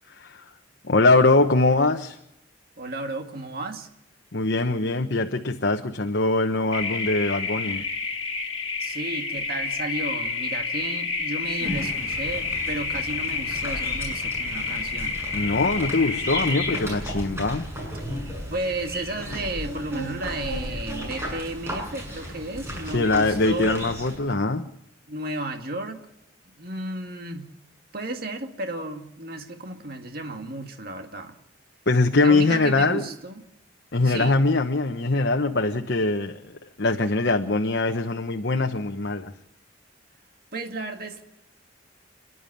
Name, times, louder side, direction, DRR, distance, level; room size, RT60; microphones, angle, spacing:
voice 1, 0.1-0.4 0.8-2.2 4.3-7.8 15.3-17.7 22.9-24.7 31.9-33.1 33.9-36.4 36.8-39.3, left 3 dB, 60° left, 1.0 m, -22 dB
voice 2, 2.8-3.9 8.8-15.2 18.5-23.9 25.1-26.1 26.5-27.5 27.9-31.3 32.2-33.4 34.0-34.4 40.5-41.2, right 2 dB, 50° right, 2.2 m, -33 dB
sound 1, 6.7-16.8, left 4 dB, 30° left, 2.7 m, -29 dB
sound 2, 11.6-24.2, equal, 15° right, 7.4 m, -34 dB
29.5 x 11.0 x 8.6 m
head